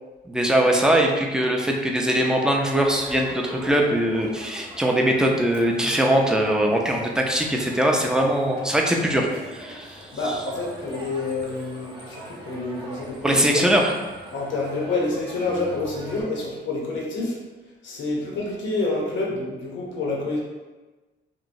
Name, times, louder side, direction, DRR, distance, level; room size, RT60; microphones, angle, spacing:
voice 1, 0.3-10.4 13.2-13.9, right 1 dB, 5° right, 0 dB, 0.4 m, -21 dB
Crowd, 2.8-16.2, right 1 dB, 25° right, 0.8 m, -41 dB
voice 2, 9.8-13.6 14.3-17.4 17.8-20.4, left 2 dB, 70° left, -2 dB, 0.8 m, -28 dB
3.0 x 2.6 x 2.6 m, 1.2 s
cardioid pair, 90°, 20 cm